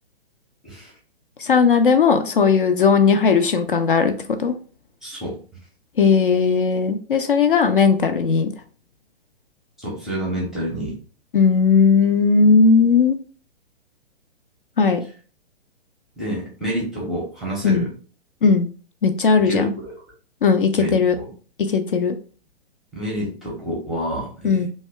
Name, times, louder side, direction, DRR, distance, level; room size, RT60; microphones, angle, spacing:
voice 1, 1.4-4.1 4.4-4.5 6.0-8.5 11.3-13.2 14.8-15.0 17.6-17.9 18.4-18.7 19.0-19.7 20.4-21.2 21.7-22.1 24.4-24.7, left 5 dB, 55° left, 7 dB, 0.5 m, -17 dB
voice 2, 5.0-5.4 9.8-11.0 16.2-17.9 19.4-20.0 20.8-21.2 22.9-24.6, equal, ahead, -5 dB, 0.6 m, -28 dB
2.7 x 2.2 x 3.3 m, 0.39 s
figure-of-eight pair, 120°, 31 cm